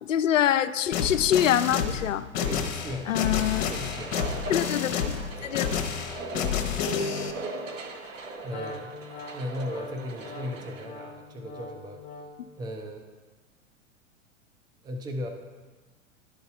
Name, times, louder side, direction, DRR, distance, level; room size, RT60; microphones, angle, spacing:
voice 1, 0.0-2.3 3.1-3.6 4.5-5.1 5.4-5.7 6.6-6.7, left 10 dB, 75° left, 14 dB, 0.5 m, -25 dB
sound 1, 0.9-7.3, left 7 dB, 50° left, 1.0 m, -29 dB
voice 2, 2.4-4.2 8.4-8.9 9.3-12.0 12.5-13.1 14.8-15.3, left 1 dB, 10° right, 4 dB, 0.6 m, -37 dB
sound 2, 3.1-10.9, right 2 dB, 70° right, 1.0 m, -39 dB
Wind instrument woodwind instrument, 8.5-12.5, left 3 dB, 20° left, 0.9 m, -43 dB
11.5 x 4.0 x 4.7 m, 1.3 s
figure-of-eight pair, 95°, 39 cm